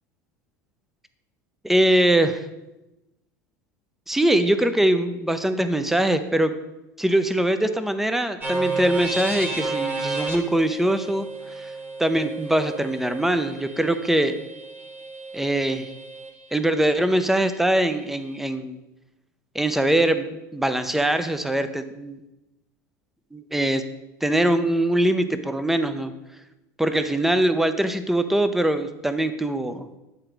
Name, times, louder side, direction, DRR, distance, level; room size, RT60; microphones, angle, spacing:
voice 1, 1.6-2.4 4.1-6.5 7.0-11.3 11.5-11.7 12.0-14.4 15.3-15.9 16.5-18.8 19.5-22.2 23.3-23.8 24.2-26.1 26.8-29.9, right 1 dB, 5° right, 10 dB, 0.6 m, -22 dB
sound 1, 8.4-16.3, right 3 dB, 20° right, 1.4 m, -32 dB
9.9 x 3.8 x 4.6 m, 0.97 s
hypercardioid pair, 85°, 10 cm